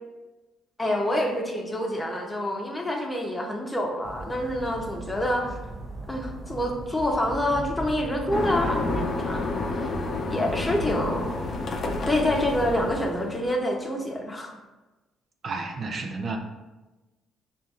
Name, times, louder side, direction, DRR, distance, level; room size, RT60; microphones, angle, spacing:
voice 1, 0.8-5.6 6.1-9.5 10.3-11.5 12.1-14.5, left 1 dB, 15° left, 0 dB, 0.8 m, -27 dB
sound 1, 4.0-9.1, right 2 dB, 25° right, 0.8 m, -38 dB
sound 2, 8.3-13.5, left 3 dB, 55° left, 0.5 m, -30 dB
voice 2, 15.4-16.4, right 3 dB, 50° right, 4 dB, 0.4 m, -31 dB
5.6 x 2.6 x 2.4 m, 1.1 s
supercardioid pair, 70°, 0 cm